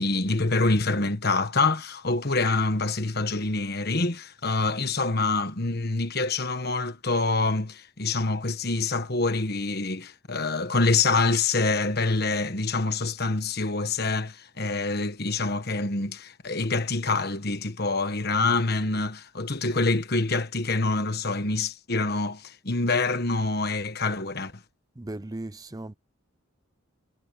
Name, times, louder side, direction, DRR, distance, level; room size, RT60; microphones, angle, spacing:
voice 1, 0.0-24.5, left 3 dB, 45° left, 1.4 m, -26 dB
voice 2, 25.0-25.9, right 2 dB, 15° right, 0.5 m, -37 dB
head